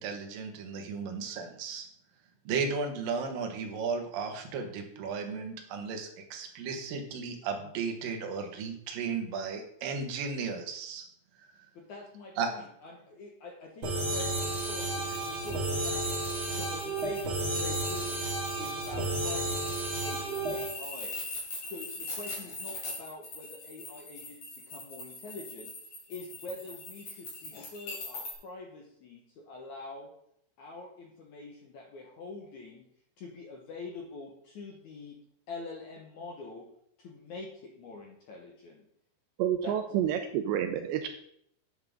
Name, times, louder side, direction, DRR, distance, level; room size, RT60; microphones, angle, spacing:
voice 1, 0.0-1.9 2.5-11.1 12.4-12.5, right 5 dB, 65° right, 3 dB, 2.6 m, -35 dB
voice 2, 11.7-16.0 16.3-17.2 17.5-18.2 18.5-21.2 21.7-25.7 26.1-30.1 30.6-32.9 33.2-35.2 35.5-36.7 37.0-38.8 39.6-39.7, left 3 dB, 80° left, -1 dB, 1.7 m, -45 dB
sound 1, 13.8-20.7, right 2 dB, 35° right, 2.2 m, -32 dB
sound 2, 15.0-28.3, left 2 dB, 45° left, 4.1 m, -42 dB
voice 3, 39.4-41.1, right 10 dB, 80° right, 6 dB, 2.7 m, -29 dB
11.0 x 8.8 x 3.6 m, 0.70 s
omnidirectional pair, 5.2 m